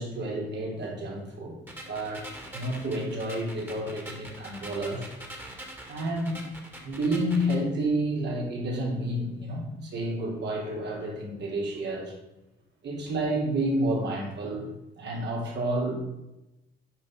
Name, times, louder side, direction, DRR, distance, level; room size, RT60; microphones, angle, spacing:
voice 1, 0.0-1.6 1.9-2.2 2.5-5.1 5.9-6.4 6.8-12.1 12.8-14.7 15.0-16.0, right 1 dB, 60° right, -1 dB, 3.2 m, -30 dB
sound 1, 1.7-7.7, right 1 dB, 10° right, 2.1 m, -44 dB
9.3 x 5.7 x 4.9 m, 0.96 s
cardioid pair, 90°, 20 cm